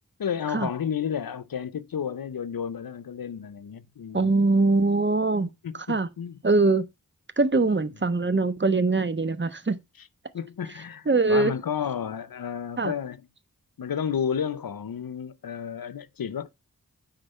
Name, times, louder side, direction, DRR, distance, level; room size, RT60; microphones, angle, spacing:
voice 1, 0.2-4.3 5.6-6.4 10.3-13.3 13.8-16.5, left 8 dB, 85° left, 0.8 m, -32 dB
voice 2, 4.1-5.5 5.9-6.1 6.4-6.8 7.4-9.8 11.1-11.5 12.8-12.9, right 3 dB, 35° right, 1.1 m, -22 dB
9.3 x 3.9 x 5.4 m
cardioid pair, 40°, 34 cm